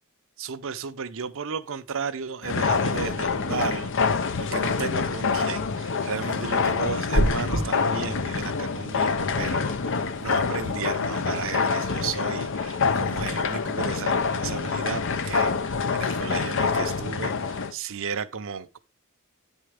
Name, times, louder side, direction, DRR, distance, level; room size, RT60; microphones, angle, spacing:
voice 1, 0.4-18.8, right 6 dB, 60° right, 0.7 m, -34 dB
sound 1, 2.4-17.7, left 5 dB, 55° left, 0.7 m, -26 dB
sound 2, 7.1-7.6, equal, 80° left, 3.0 m, -22 dB
10.0 x 4.5 x 4.9 m
head